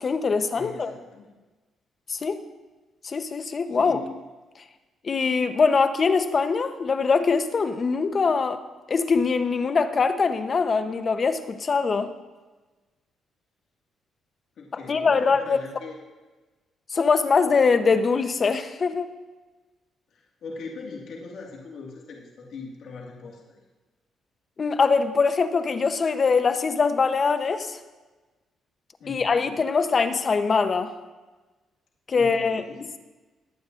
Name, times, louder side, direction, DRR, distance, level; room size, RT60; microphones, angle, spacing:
voice 1, 0.0-0.9 2.1-2.4 3.0-4.0 5.0-8.6 8.9-12.1 14.9-15.6 16.9-19.1 24.6-27.8 29.1-30.9 32.1-32.6, left 5 dB, 40° left, 9 dB, 0.8 m, -22 dB
voice 2, 0.5-1.3 3.7-4.2 14.6-16.0 20.1-23.6 29.0-29.6 32.1-32.9, left 4 dB, 70° left, -2 dB, 1.8 m, -40 dB
21.5 x 8.8 x 2.5 m, 1.2 s
cardioid pair, 90°, 0 cm